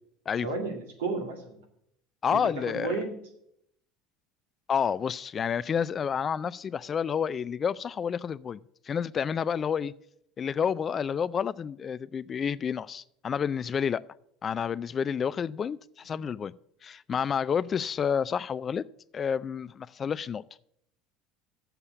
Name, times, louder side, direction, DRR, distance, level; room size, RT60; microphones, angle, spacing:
voice 1, 0.4-1.6 2.3-3.2, right 3 dB, 80° right, 2.1 m, -33 dB
voice 2, 2.2-2.9 4.7-9.9 10.4-14.0 14.4-16.5 16.8-18.8 19.1-20.4, left 7 dB, 35° left, 0.4 m, -29 dB
7.4 x 6.8 x 8.0 m
hypercardioid pair, 75°, 0 cm